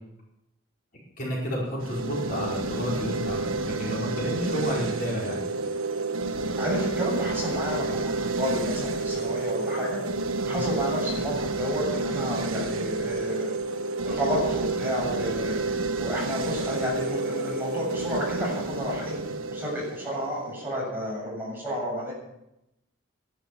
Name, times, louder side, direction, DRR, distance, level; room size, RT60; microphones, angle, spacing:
voice 1, 1.2-5.4 10.5-10.6, equal, 45° left, -5 dB, 5.0 m, -31 dB
sound 1, 1.8-20.9, right 3 dB, 85° right, 1.3 m, -30 dB
voice 2, 6.6-10.0 10.5-13.5 14.1-15.6 16.0-19.2 19.5-22.1, equal, 10° right, -4 dB, 7.4 m, -31 dB
14.0 x 12.0 x 7.4 m, 0.85 s
head